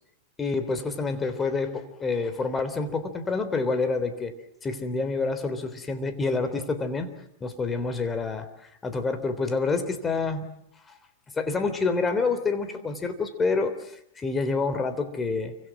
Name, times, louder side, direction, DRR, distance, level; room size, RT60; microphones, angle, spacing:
voice 1, 0.4-4.3 4.6-7.1 7.4-10.5 11.4-15.6, left 4 dB, 15° left, 10 dB, 3.5 m, -28 dB
29.5 x 25.5 x 6.1 m, 0.75 s
hypercardioid pair, 130°, 0 cm